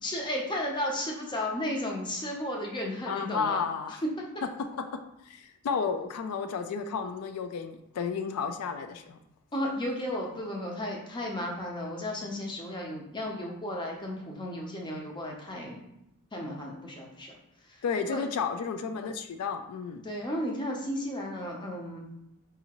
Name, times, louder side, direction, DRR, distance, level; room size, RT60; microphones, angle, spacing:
voice 1, 0.0-3.6 4.2-4.3 9.5-15.9 16.3-17.3 18.1-18.2 20.0-22.1, left 1 dB, 20° left, 0 dB, 0.6 m, -34 dB
voice 2, 3.1-4.0 4.6-9.2 17.8-20.0, left 6 dB, 90° left, 8 dB, 0.3 m, -32 dB
4.8 x 2.7 x 2.9 m, 0.82 s
head